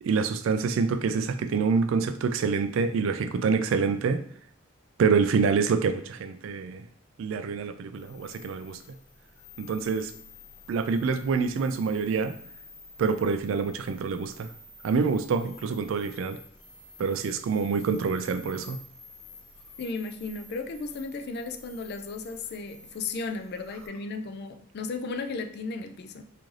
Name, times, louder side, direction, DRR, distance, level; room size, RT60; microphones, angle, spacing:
voice 1, 0.0-4.2 5.0-6.8 7.2-8.8 9.6-10.1 10.7-12.3 13.0-14.5 14.8-16.4 17.0-18.8, right 5 dB, 65° right, 10 dB, 0.3 m, -26 dB
sound 1, 7.9-23.9, left 4 dB, 85° left, 1.0 m, -50 dB
voice 2, 19.8-26.2, left 3 dB, 50° left, 7 dB, 0.4 m, -35 dB
3.1 x 2.6 x 3.7 m, 0.62 s
head